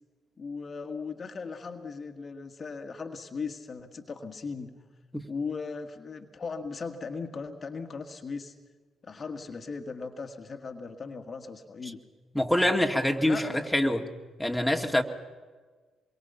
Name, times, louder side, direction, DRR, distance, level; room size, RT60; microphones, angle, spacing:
voice 1, 0.4-4.8 5.3-8.5 9.0-12.0 13.2-13.6, left 4 dB, 45° left, 6 dB, 1.7 m, -38 dB
voice 2, 12.3-14.1 14.4-15.0, left 1 dB, 5° left, 3 dB, 2.3 m, -25 dB
27.0 x 23.0 x 5.8 m, 1.4 s
hypercardioid pair, 40°, 0 cm